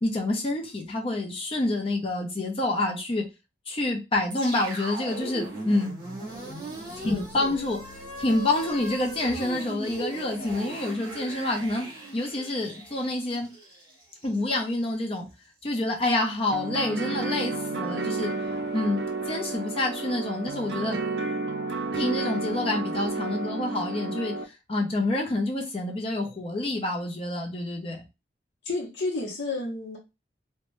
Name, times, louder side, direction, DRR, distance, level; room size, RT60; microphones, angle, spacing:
voice 1, 0.0-3.3 3.7-5.9 7.0-7.8 8.2-11.9 12.1-13.5 14.2-15.2 15.6-18.3 18.7-21.0 21.9-24.4 24.7-28.0, left 2 dB, 30° left, 0.5 m, -27 dB
sound 1, 4.3-14.5, right 1 dB, 25° right, 0.8 m, -38 dB
voice 2, 6.9-7.5 28.6-30.0, left 2 dB, 70° left, 0.7 m, -32 dB
sound 2, 16.5-24.4, right 3 dB, 60° right, 0.4 m, -31 dB
2.6 x 2.1 x 3.1 m
head